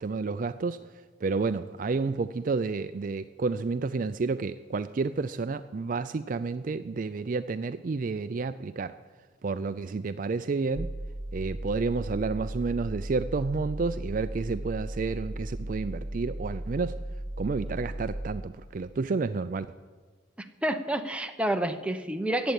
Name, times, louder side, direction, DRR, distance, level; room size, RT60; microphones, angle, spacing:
voice 1, 0.0-9.0 9.4-10.9 11.3-17.0 17.4-19.7, right 4 dB, 40° right, 12 dB, 0.4 m, -30 dB
sound 1, 10.7-18.1, right 1 dB, 50° left, 4.1 m, -36 dB
voice 2, 20.4-22.5, right 1 dB, 5° right, 7 dB, 0.8 m, -29 dB
15.0 x 9.2 x 8.3 m, 1.4 s
head